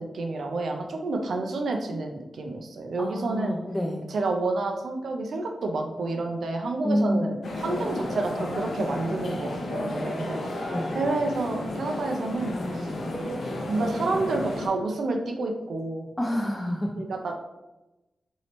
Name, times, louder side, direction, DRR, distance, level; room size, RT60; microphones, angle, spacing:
voice 1, 0.0-3.6 4.1-10.4 10.9-12.9 13.7-16.1 17.0-17.3, right 2 dB, 75° right, 3 dB, 0.4 m, -29 dB
voice 2, 3.0-4.0 6.8-7.2 10.7-11.0 16.2-17.0, equal, 10° left, -1 dB, 0.3 m, -27 dB
sound 1, 7.4-14.7, left 1 dB, 70° left, 0.5 m, -32 dB
3.1 x 2.7 x 2.9 m, 1.0 s
wide cardioid pair, 120°, 0 cm